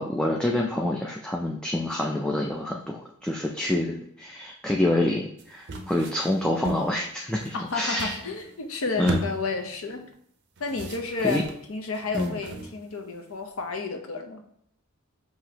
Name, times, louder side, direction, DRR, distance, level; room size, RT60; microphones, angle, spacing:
voice 1, 0.0-8.2 9.0-9.2 11.2-11.4 12.1-12.3, left 1 dB, 5° left, -1 dB, 0.3 m, -27 dB
sound 1, 5.4-7.0 7.3-8.6 9.0-10.0 10.6-13.0 13.4-13.8, right 2 dB, 55° right, 0.6 m, -36 dB
voice 2, 7.5-10.0 10.6-11.4 11.7-14.4, left 4 dB, 85° left, 5 dB, 0.7 m, -31 dB
5.8 x 2.8 x 2.8 m, 0.69 s
head